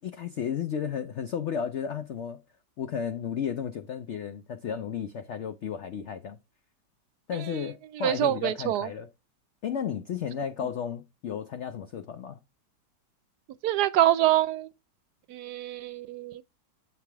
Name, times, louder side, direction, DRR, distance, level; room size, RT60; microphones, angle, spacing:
voice 1, 0.0-2.4 2.8-6.4 7.3-9.1 9.6-12.4, left 8 dB, 80° left, 0.6 m, -33 dB
voice 2, 7.3-7.7 7.9-8.9 13.6-14.7 15.3-16.4, right 13 dB, 75° right, 1.1 m, -26 dB
7.9 x 3.4 x 4.5 m
omnidirectional pair, 1.9 m